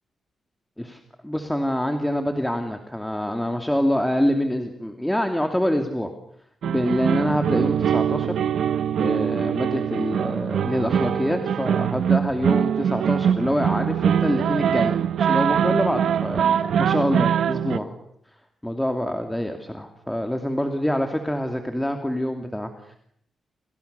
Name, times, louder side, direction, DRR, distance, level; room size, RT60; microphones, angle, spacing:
voice 1, 0.8-6.1 6.6-8.3 9.0-18.0 18.6-23.0, equal, 5° left, 5 dB, 2.6 m, -26 dB
sound 1, 6.6-17.8, right 8 dB, 80° right, 1.0 m, -23 dB
29.5 x 28.0 x 6.9 m, 0.71 s
cardioid pair, 110°, 0 cm